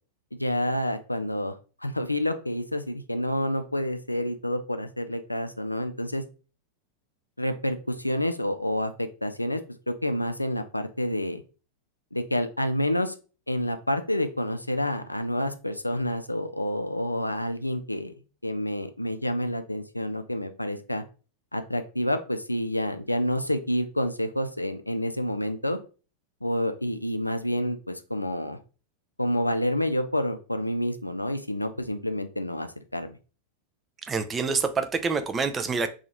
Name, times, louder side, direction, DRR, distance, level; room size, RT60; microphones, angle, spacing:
voice 1, 0.3-1.6 1.8-6.2 7.4-9.6 9.9-11.4 12.1-13.2 13.5-18.1 18.4-21.0 21.5-25.8 26.4-28.6 29.2-33.2, left 1 dB, 85° left, 8 dB, 0.4 m, -28 dB
voice 2, 34.1-35.9, right 4 dB, 20° right, 8 dB, 0.4 m, -26 dB
2.8 x 2.4 x 4.0 m, 0.35 s
figure-of-eight pair, 90°, 0 cm